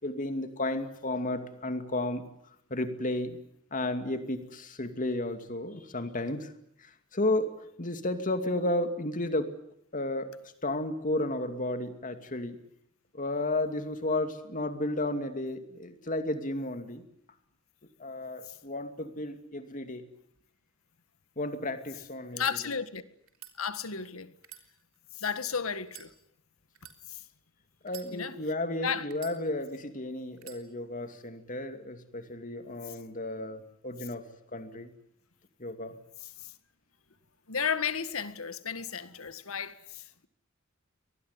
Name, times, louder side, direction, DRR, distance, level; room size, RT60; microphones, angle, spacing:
voice 1, 0.0-2.3 2.7-3.4 3.7-6.5 6.8-7.5 7.8-9.6 9.9-10.3 10.6-12.6 13.1-17.0 18.0-20.0 21.4-22.4 27.8-34.2 34.5-34.9 35.6-36.0, left 1 dB, 40° left, 2.5 m, -33 dB
voice 2, 22.3-23.0 23.6-24.3 25.1-26.1 27.1-27.2 28.1-28.3 28.8-29.1 32.9-33.0 36.2-36.5 37.5-40.3, left 6 dB, 85° left, 1.7 m, -34 dB
sound 1, 22.3-22.6 23.3-23.5 24.4-25.3 25.8-26.1 26.7-27.0 27.8-28.5 29.1-29.8 30.4-30.6, right 11 dB, 90° right, 3.6 m, -49 dB
24.0 x 19.5 x 9.7 m
head